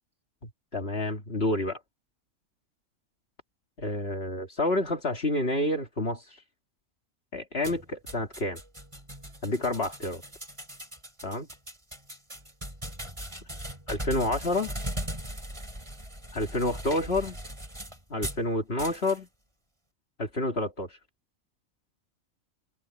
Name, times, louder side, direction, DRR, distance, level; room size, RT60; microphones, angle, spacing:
voice 1, 0.4-1.8 3.8-6.2 7.3-8.6 9.4-10.2 11.2-11.5 13.9-14.8 16.3-17.4 18.1-19.3 20.2-21.0, left 2 dB, 45° left, 2.6 m, -29 dB
sound 1, 7.6-18.4 18.8-19.2, right 1 dB, 20° right, 6.7 m, -39 dB
omnidirectional pair, 1.4 m